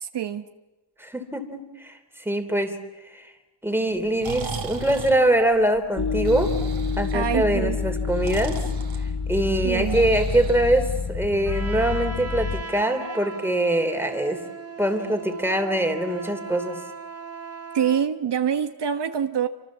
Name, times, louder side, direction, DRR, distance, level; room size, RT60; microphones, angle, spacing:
voice 1, 0.0-0.4 7.1-7.8 9.6-10.1 17.7-19.5, right 8 dB, 65° right, 8 dB, 1.1 m, -25 dB
voice 2, 1.0-1.9 2.2-2.8 3.1-3.2 3.6-6.5 7.0-8.6 9.3-14.4 14.8-16.8, right 1 dB, 5° right, 6 dB, 3.1 m, -23 dB
Breathing, 3.9-11.3, right 5 dB, 85° right, 2.9 m, -37 dB
sound 1, 6.0-12.6, left 5 dB, 40° left, 0.9 m, -28 dB
Trumpet, 11.4-18.1, right 5 dB, 30° right, 1.8 m, -38 dB
27.5 x 25.0 x 7.3 m, 1.1 s
wide cardioid pair, 105°, 44 cm